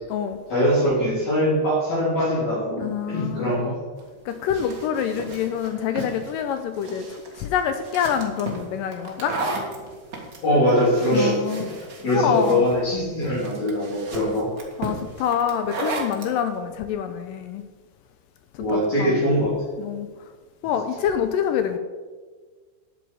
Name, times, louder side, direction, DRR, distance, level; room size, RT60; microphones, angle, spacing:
voice 1, 0.5-3.7 10.4-11.4 12.0-14.5 18.6-19.5, equal, 50° left, -9 dB, 4.6 m, -22 dB
voice 2, 2.8-3.5 4.3-9.4 11.1-11.7 12.1-12.6 14.8-17.6 18.5-19.2 19.8-20.1 20.6-21.8, left 8 dB, 85° left, 8 dB, 2.0 m, -26 dB
sound 1, 4.0-16.3, right 2 dB, 70° right, 0.8 m, -35 dB
12.5 x 9.2 x 4.7 m, 1.5 s
omnidirectional pair, 4.4 m